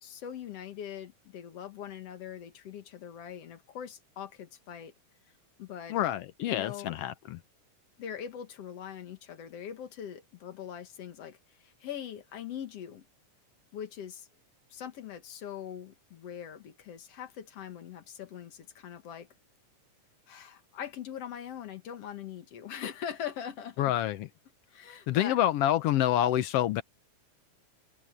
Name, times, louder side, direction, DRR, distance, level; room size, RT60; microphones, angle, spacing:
voice 1, 0.0-4.9 5.6-6.0 6.4-7.0 8.0-13.0 13.7-14.3 14.7-19.3 20.3-23.9 24.7-25.4, left 9 dB, 55° left, 2.3 m, -42 dB
voice 2, 5.9-7.4 23.8-24.3 25.1-26.8, left 12 dB, 80° left, 1.4 m, -27 dB
open air
omnidirectional pair, 3.8 m